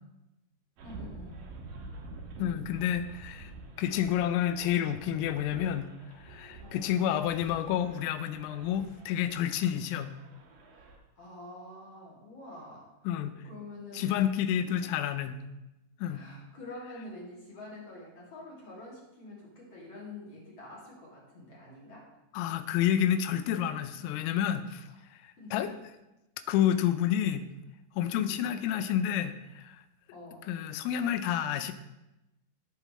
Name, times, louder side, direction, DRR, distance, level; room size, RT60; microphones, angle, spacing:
voice 1, 0.8-1.5 6.6-6.9 10.7-13.2 13.4-14.1 14.6-15.1 16.1-22.1 24.9-25.0 25.4-25.8 28.1-28.4 30.1-30.5, left 2 dB, 40° left, -5 dB, 2.6 m, -47 dB
sound 1, 0.8-10.9, right 3 dB, 75° right, 1.9 m, -48 dB
voice 2, 2.4-3.5 3.8-5.9 6.2-10.1 13.1-13.4 14.0-15.4 16.0-16.2 22.3-25.7 26.5-27.5 28.0-29.8 30.5-31.7, left 10 dB, 85° left, 11 dB, 3.3 m, -29 dB
17.5 x 6.6 x 3.2 m, 0.95 s
omnidirectional pair, 5.8 m